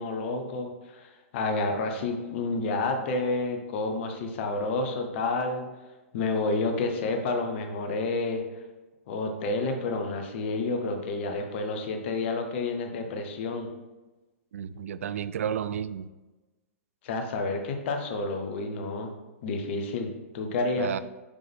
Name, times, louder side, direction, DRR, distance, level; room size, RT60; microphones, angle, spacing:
voice 1, 0.0-5.7 6.1-8.4 9.1-13.7 17.0-19.1 19.4-20.9, left 3 dB, 50° left, 5 dB, 1.0 m, -29 dB
voice 2, 14.5-16.1 20.8-21.0, right 8 dB, 70° right, 14 dB, 0.4 m, -32 dB
5.5 x 5.1 x 3.5 m, 1.1 s
hypercardioid pair, 115°, 8 cm